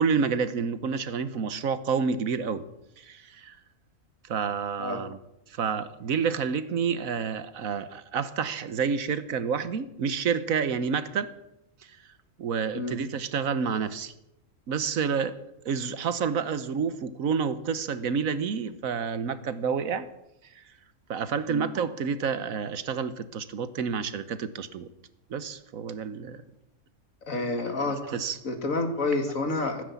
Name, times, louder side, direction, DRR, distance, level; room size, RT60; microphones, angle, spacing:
voice 1, 0.0-2.6 3.0-3.6 4.3-5.2 5.5-11.3 11.8-12.0 12.4-14.1 14.7-15.4 15.6-20.1 20.5-20.6 21.1-24.9 25.3-26.4 27.8-28.4 29.6-29.8, right 6 dB, 75° right, 13 dB, 1.4 m, -29 dB
voice 2, 27.3-28.0 28.4-29.8, left 3 dB, 70° left, 6 dB, 2.5 m, -29 dB
15.0 x 10.0 x 8.4 m, 0.85 s
omnidirectional pair, 1.5 m